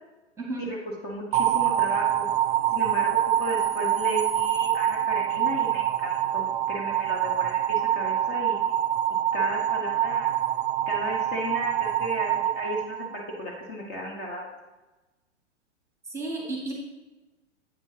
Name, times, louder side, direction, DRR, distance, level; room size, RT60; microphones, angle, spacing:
voice 1, 1.0-2.3 2.7-8.6 9.3-10.3 10.9-14.5, equal, 25° left, -1 dB, 1.2 m, -34 dB
sound 1, 1.3-13.5, right 11 dB, 45° right, 0.6 m, -25 dB
voice 2, 16.1-16.7, right 2 dB, 5° right, -2 dB, 1.4 m, -32 dB
8.5 x 6.8 x 2.8 m, 1.1 s
figure-of-eight pair, 110°, 37 cm